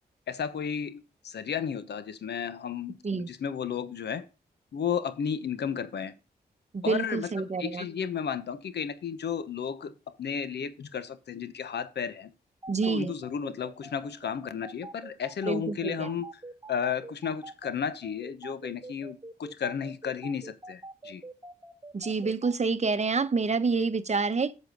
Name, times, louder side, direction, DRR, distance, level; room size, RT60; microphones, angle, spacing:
voice 1, 0.3-4.2 4.7-6.1 6.8-12.3 12.8-16.3 16.7-21.2, left 7 dB, 80° left, 1.1 m, -33 dB
voice 2, 6.7-7.9 12.7-13.1 15.5-16.1 21.9-24.5, right 4 dB, 40° right, 0.9 m, -28 dB
sound 1, 12.6-22.5, right 2 dB, 20° right, 1.5 m, -44 dB
8.1 x 6.4 x 5.2 m
cardioid pair, 55°, 17 cm